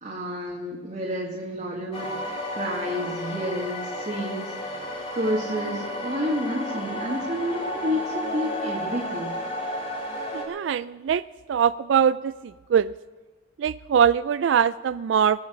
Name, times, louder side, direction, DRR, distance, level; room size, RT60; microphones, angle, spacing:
voice 1, 0.0-2.1 2.5-4.8 5.1-9.3, equal, 40° right, -5 dB, 2.1 m, -30 dB
sound 1, 1.9-10.4, left 1 dB, 30° left, 2.2 m, -32 dB
voice 2, 10.3-11.2 11.5-12.3 12.7-12.9 13.6-15.4, right 8 dB, 75° right, 15 dB, 0.3 m, -22 dB
20.5 x 7.1 x 6.3 m, 1.4 s
head